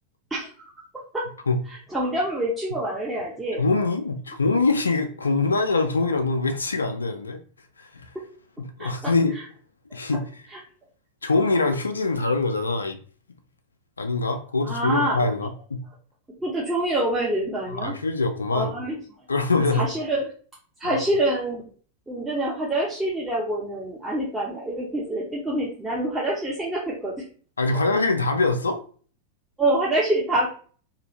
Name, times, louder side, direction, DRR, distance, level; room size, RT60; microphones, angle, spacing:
voice 1, 1.7-3.6 8.1-8.2 8.8-9.4 10.5-10.6 14.6-15.3 16.4-17.9 18.5-19.0 19.6-20.3 20.8-21.6 22.1-27.3 29.6-30.5, right 1 dB, 10° right, -6 dB, 0.7 m, -26 dB
voice 2, 3.6-7.4 7.8-8.1 8.8-9.4 9.9-10.4 11.2-13.0 14.0-15.8 17.8-18.7 19.3-19.9 20.8-21.0 27.6-28.8, left 3 dB, 75° left, 7 dB, 0.3 m, -23 dB
2.6 x 2.6 x 3.0 m, 0.43 s
figure-of-eight pair, 90°, 0 cm